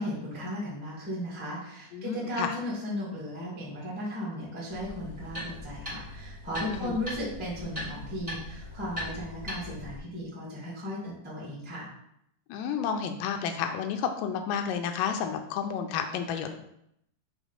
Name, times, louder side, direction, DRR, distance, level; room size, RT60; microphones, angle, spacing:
voice 1, 0.0-11.9, left 1 dB, 5° right, -6 dB, 1.0 m, -36 dB
voice 2, 1.9-2.5 6.7-7.0 12.5-16.6, left 7 dB, 80° left, 6 dB, 2.1 m, -31 dB
sound 1, 4.7-10.0, left 1 dB, 35° right, 0.5 m, -39 dB
6.0 x 3.7 x 5.6 m, 0.75 s
omnidirectional pair, 4.2 m